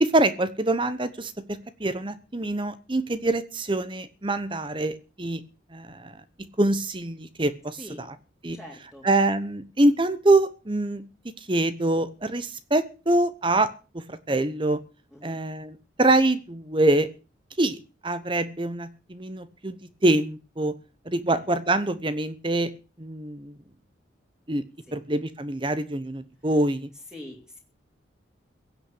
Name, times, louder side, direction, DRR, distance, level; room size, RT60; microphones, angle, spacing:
voice 1, 0.0-5.4 5.7-6.2 6.6-7.8 8.4-8.6 9.0-11.0 11.4-14.8 15.2-17.1 17.6-19.8 20.0-20.8 21.1-22.7 23.0-23.5 24.5-24.6 24.9-26.9, right 2 dB, 25° right, 13 dB, 0.9 m, -25 dB
voice 2, 7.8-8.1 8.5-9.1 15.1-15.4 21.3-21.4 24.9-25.0 27.1-27.6, left 1 dB, 5° right, 0 dB, 3.1 m, -43 dB
16.5 x 8.6 x 8.4 m, 0.36 s
head